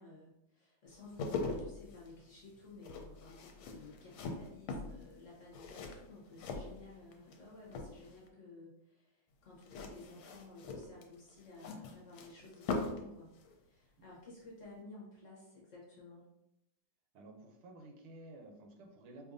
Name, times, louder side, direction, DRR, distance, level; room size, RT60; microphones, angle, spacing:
voice 1, 0.0-13.3 13.6-16.2, left 2 dB, 50° left, -5 dB, 0.9 m, -54 dB
sound 1, 0.9-7.4 7.7-8.3 9.6-13.1 13.4-13.5, left 3 dB, 75° left, 1.4 m, -42 dB
voice 2, 6.5-6.8 17.1-19.3, right 2 dB, 80° right, 3 dB, 1.6 m, -53 dB
5.0 x 2.6 x 2.5 m, 0.86 s
omnidirectional pair, 2.4 m